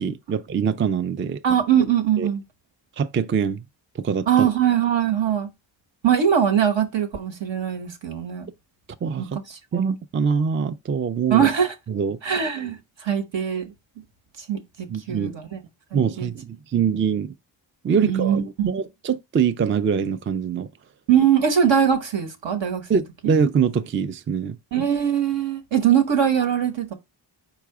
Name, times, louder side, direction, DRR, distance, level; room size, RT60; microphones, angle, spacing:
voice 1, 0.0-1.4 2.2-2.3 3.0-3.6 4.0-4.5 9.0-9.4 9.7-11.5 11.9-12.2 14.9-15.3 15.9-17.3 17.8-20.7 22.9-24.6, right 6 dB, 30° right, 0.4 m, -24 dB
voice 2, 1.4-2.4 4.3-5.5 6.0-8.5 9.2-9.3 9.7-9.8 11.3-11.7 12.2-12.8 13.0-13.7 14.5-15.6 15.9-16.3 16.7-16.8 17.9-18.7 21.1-23.3 24.7-26.9, right 8 dB, 70° right, 1.1 m, -21 dB
4.7 x 2.4 x 4.7 m
cardioid pair, 45°, 47 cm